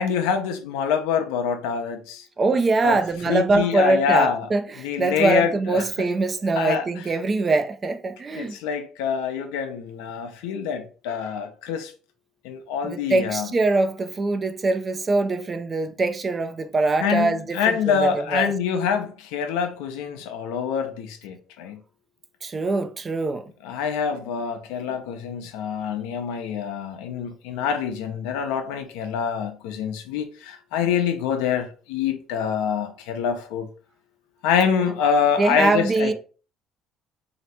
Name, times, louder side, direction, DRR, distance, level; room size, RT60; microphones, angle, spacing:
voice 1, 0.0-2.3 2.8-3.0 3.3-4.5 4.8-5.8 6.6-6.9 8.3-11.9 12.4-13.5 17.0-21.8 23.6-33.7 34.4-36.1, left 7 dB, 90° left, 0.7 m, -25 dB
voice 2, 2.4-8.6 12.8-18.5 22.4-23.5 34.8-34.9 35.4-36.1, right 3 dB, 30° right, 0.5 m, -23 dB
3.2 x 2.9 x 4.2 m
supercardioid pair, 85°, 0 cm